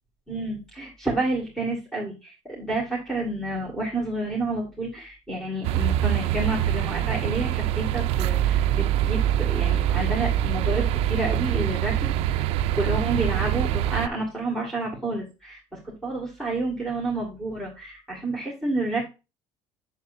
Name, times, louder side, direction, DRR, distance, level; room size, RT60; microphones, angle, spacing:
voice 1, 0.3-11.9 12.3-12.5 12.7-15.6 15.8-19.0, right 2 dB, 5° left, -3 dB, 2.1 m, -29 dB
sound 1, 5.6-14.1, right 12 dB, 65° right, 0.5 m, -24 dB
7.3 x 6.7 x 2.6 m, 0.28 s
cardioid pair, 150°, 11 cm